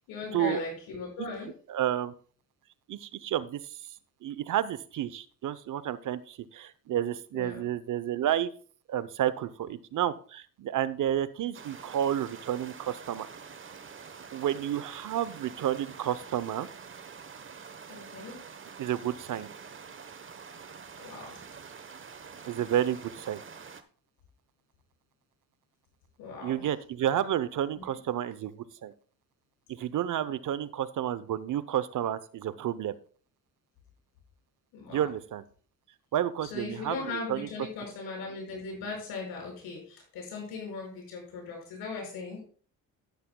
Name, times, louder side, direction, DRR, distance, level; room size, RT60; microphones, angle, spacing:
voice 1, 0.0-1.5 7.3-7.7 17.9-18.4 21.0-21.4 26.2-26.6 27.2-27.3 27.8-27.9 34.7-35.0 36.5-42.4, left 4 dB, 85° left, 0 dB, 5.5 m, -38 dB
voice 2, 1.7-2.1 2.9-3.8 4.2-8.5 8.9-13.3 14.3-16.7 18.8-19.5 22.5-23.4 26.4-28.5 28.8-28.9 29.7-32.9 34.9-35.4 36.1-37.5, right 11 dB, 60° right, 16 dB, 0.8 m, -30 dB
sound 1, 11.5-23.8, right 6 dB, 35° right, 1.1 m, -46 dB
11.5 x 11.0 x 2.3 m, 0.43 s
supercardioid pair, 75°, 36 cm